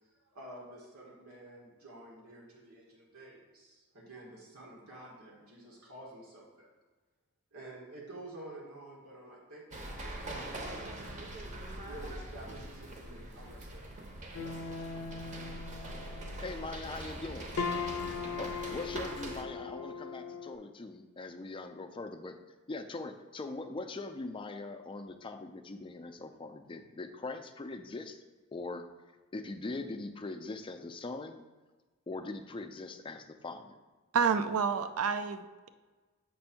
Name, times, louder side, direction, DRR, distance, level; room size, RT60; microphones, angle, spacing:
voice 1, 0.0-6.7 7.5-11.0 11.8-14.0, right 1 dB, 85° right, -4 dB, 1.4 m, -50 dB
sound 1, 9.7-19.4, right 1 dB, 35° right, 0.7 m, -43 dB
sound 2, 14.3-20.5, left 5 dB, 85° left, 0.5 m, -39 dB
voice 2, 16.4-17.5 18.4-22.4 22.7-28.2 28.5-28.9 29.3-31.4 32.1-33.8, left 3 dB, 25° left, 7 dB, 0.4 m, -41 dB
voice 3, 34.1-35.7, right 6 dB, 70° right, 11 dB, 0.4 m, -29 dB
7.5 x 2.6 x 5.7 m, 1.3 s
head